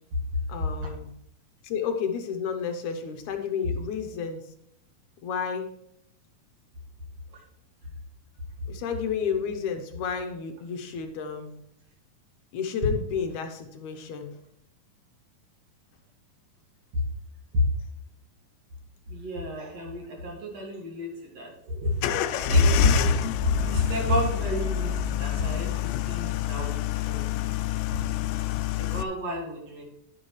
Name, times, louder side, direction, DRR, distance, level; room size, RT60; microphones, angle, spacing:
voice 1, 0.5-1.1 1.6-4.5 5.2-5.7 8.7-11.5 12.5-14.4, left 6 dB, 70° left, 5 dB, 2.1 m, -31 dB
voice 2, 19.1-21.9 22.3-23.1 23.4-27.3 28.8-29.8, left 2 dB, 50° right, 0 dB, 2.9 m, -28 dB
sound 1, 22.0-29.0, left 12 dB, 90° left, 2.2 m, -27 dB
11.5 x 9.5 x 3.1 m, 0.75 s
omnidirectional pair, 3.9 m